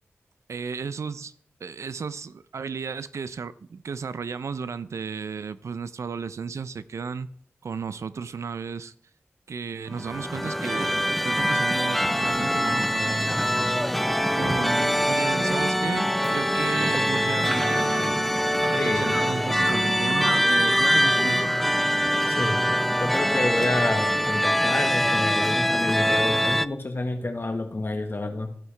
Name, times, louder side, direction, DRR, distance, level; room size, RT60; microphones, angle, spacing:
voice 1, 0.5-1.3 1.6-7.3 7.6-8.9 9.5-13.4 14.3-18.3 18.6-21.5, right 5 dB, 80° right, 0.4 m, -33 dB
sound 1, 9.9-26.7, equal, ahead, 0.3 m, -23 dB
voice 2, 18.8-19.1 22.3-22.6 23.0-28.6, left 2 dB, 45° left, 1.4 m, -29 dB
14.0 x 4.7 x 3.3 m
cardioid pair, 40°, 5 cm